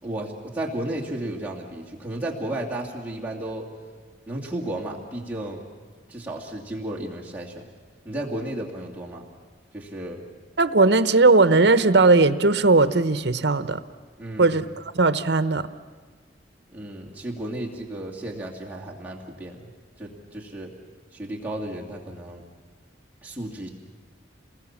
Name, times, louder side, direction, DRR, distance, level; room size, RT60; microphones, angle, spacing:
voice 1, 0.0-3.7 4.3-5.6 6.1-7.6 8.0-9.2 9.7-10.2 14.2-14.6 16.7-19.7 20.0-20.7 21.1-22.4 23.2-23.7, right 1 dB, 10° right, -4 dB, 2.5 m, -33 dB
voice 2, 10.6-13.8 14.4-14.6 14.9-15.6, right 3 dB, 65° right, 13 dB, 0.9 m, -18 dB
29.0 x 20.5 x 7.3 m, 1.5 s
head